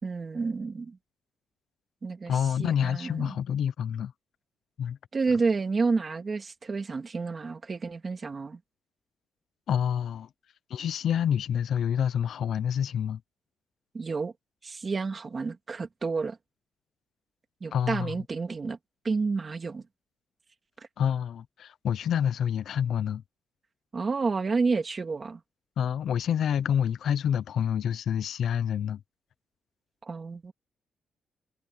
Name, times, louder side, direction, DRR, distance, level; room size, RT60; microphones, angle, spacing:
voice 1, 0.0-1.0 2.0-3.4 5.1-8.6 13.9-14.3 14.6-16.4 17.6-18.8 19.0-19.9 23.9-25.4 30.0-30.5, right 4 dB, 25° right, 2.1 m, -30 dB
voice 2, 2.3-4.1 4.8-5.0 9.7-10.3 10.7-13.2 17.7-18.2 21.0-23.2 25.8-29.0, left 8 dB, 55° left, 0.6 m, -27 dB
cardioid pair, 175°, 0 cm